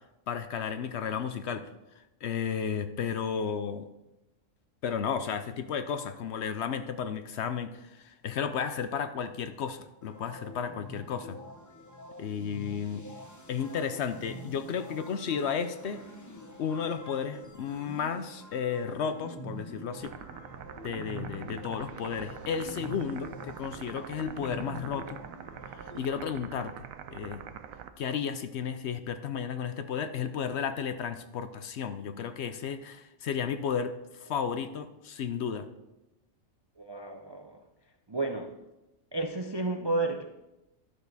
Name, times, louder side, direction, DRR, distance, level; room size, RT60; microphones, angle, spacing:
voice 1, 0.3-1.7 2.2-3.8 4.8-11.4 12.2-13.0 13.5-16.0 16.6-20.1 20.8-25.2 25.8-26.7 27.1-27.4 28.0-35.7, left 7 dB, 65° left, 10 dB, 0.8 m, -33 dB
sound 1, 10.0-26.0, equal, 15° left, 0.7 m, -46 dB
alien tapping loop, 20.0-27.9, right 9 dB, 85° right, 1.0 m, -45 dB
voice 2, 36.8-37.6 38.1-38.6 39.1-40.2, right 2 dB, 40° right, 4 dB, 0.4 m, -31 dB
12.0 x 6.5 x 4.0 m, 0.95 s
omnidirectional pair, 1.4 m